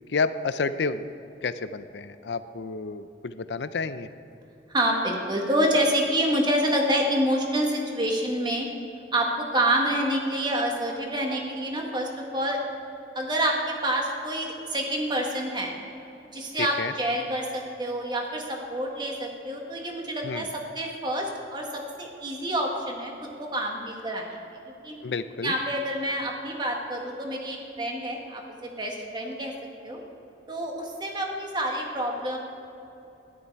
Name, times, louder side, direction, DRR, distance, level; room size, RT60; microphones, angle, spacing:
voice 1, 0.1-1.0 1.4-4.1 16.6-16.9 20.2-20.5 25.0-25.5, left 4 dB, 80° left, 12 dB, 0.5 m, -30 dB
voice 2, 4.7-8.7 9.1-12.6 13.1-15.7 16.3-24.4 24.8-25.0 25.4-29.5 29.8-30.0 30.5-32.4, right 1 dB, 25° right, 1 dB, 1.6 m, -27 dB
13.0 x 11.0 x 4.7 m, 2.9 s
head